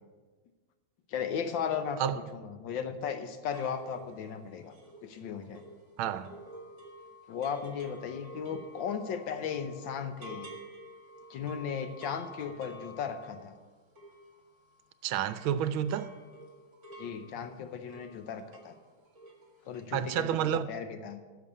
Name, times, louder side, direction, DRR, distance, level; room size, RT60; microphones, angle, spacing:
voice 1, 1.1-2.0 2.3-4.8 5.0-5.6 7.3-10.5 11.3-13.6 17.0-18.7 19.7-21.2, left 7 dB, 70° left, 1.5 m, -36 dB
sound 1, 3.5-14.8 15.1-18.8 19.0-19.5 19.7-19.8, equal, 35° right, 2.3 m, -50 dB
voice 2, 6.0-6.3 15.0-16.1 19.9-20.7, right 10 dB, 80° right, 1.4 m, -30 dB
11.0 x 6.9 x 8.3 m
omnidirectional pair, 2.3 m